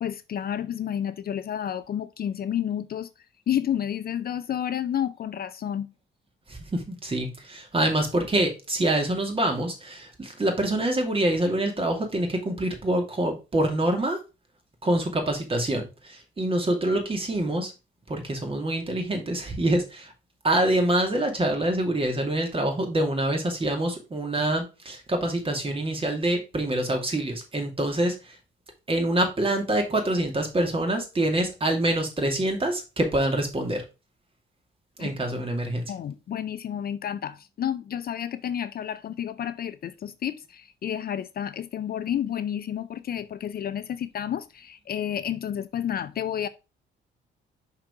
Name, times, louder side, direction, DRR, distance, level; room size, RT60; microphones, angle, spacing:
voice 1, 0.0-3.1 3.5-5.9 35.0-35.1 35.9-46.5, left 9 dB, 50° left, 0.5 m, -30 dB
voice 2, 6.5-14.2 14.8-17.7 18.1-20.1 20.4-28.4 28.9-33.8 35.0-35.9, right 1 dB, 25° right, 2.2 m, -26 dB
5.9 x 3.8 x 4.8 m
cardioid pair, 90°, 20 cm